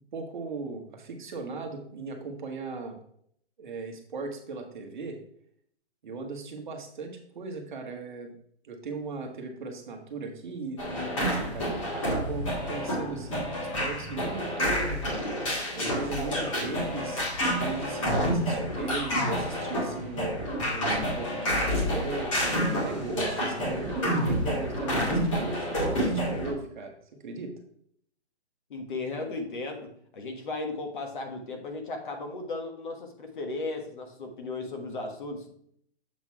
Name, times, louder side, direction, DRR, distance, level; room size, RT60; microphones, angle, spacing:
voice 1, 0.1-3.0 3.6-5.2 6.0-8.3 8.6-15.0 15.7-27.5, right 3 dB, 45° right, 3 dB, 1.2 m, -37 dB
sound 1, 10.8-26.5, equal, 30° left, 2.0 m, -29 dB
voice 2, 28.7-35.5, left 3 dB, 45° left, 4 dB, 1.4 m, -36 dB
7.3 x 3.9 x 4.5 m, 0.65 s
hypercardioid pair, 170°, 33 cm